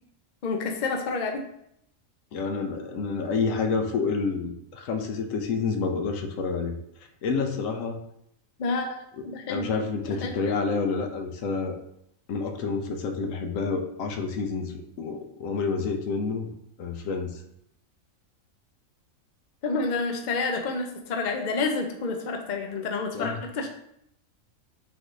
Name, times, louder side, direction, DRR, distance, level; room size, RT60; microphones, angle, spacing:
voice 1, 0.4-1.4 8.6-9.0 9.2-9.7 10.1-10.3 19.6-23.7, left 3 dB, 55° left, 4 dB, 0.5 m, -29 dB
voice 2, 2.3-6.7 7.2-8.0 9.2-11.8 12.3-16.5 16.8-17.4 23.1-23.4, left 4 dB, 75° left, 5 dB, 0.9 m, -29 dB
4.0 x 2.6 x 4.6 m, 0.74 s
omnidirectional pair, 1.4 m